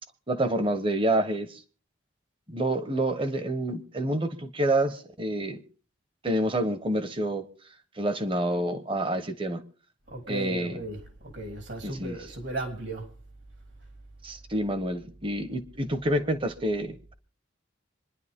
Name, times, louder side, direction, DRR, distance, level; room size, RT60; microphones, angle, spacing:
voice 1, 0.3-1.6 2.5-5.6 6.2-7.5 8.0-9.6 10.3-10.8 11.8-12.2 14.2-17.1, right 1 dB, 25° right, 1.2 m, -28 dB
voice 2, 10.1-13.1, right 1 dB, 60° right, 3.2 m, -36 dB
26.5 x 10.5 x 3.7 m
head